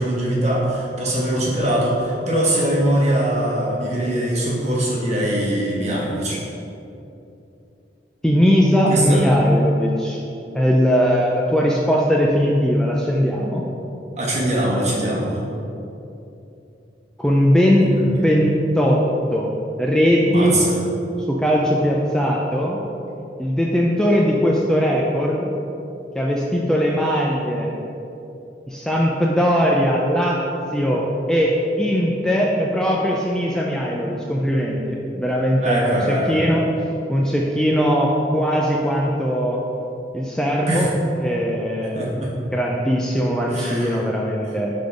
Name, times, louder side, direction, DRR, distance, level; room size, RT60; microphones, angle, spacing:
voice 1, 0.0-6.4 8.9-9.2 14.2-15.4 20.2-20.7 35.6-36.4 40.7-40.9 41.9-42.3 43.5-44.0, right 1 dB, 40° right, -5 dB, 1.3 m, -22 dB
voice 2, 8.2-10.2 10.5-13.6 17.2-19.0 19.3-19.5 19.8-20.6 21.3-22.8 23.4-25.5 26.1-27.7 28.7-30.4 30.7-36.7 37.1-39.6 40.1-40.9 41.2-42.1 42.5-44.7, equal, 5° left, -3 dB, 0.4 m, -19 dB
5.7 x 3.7 x 4.9 m, 2.8 s
head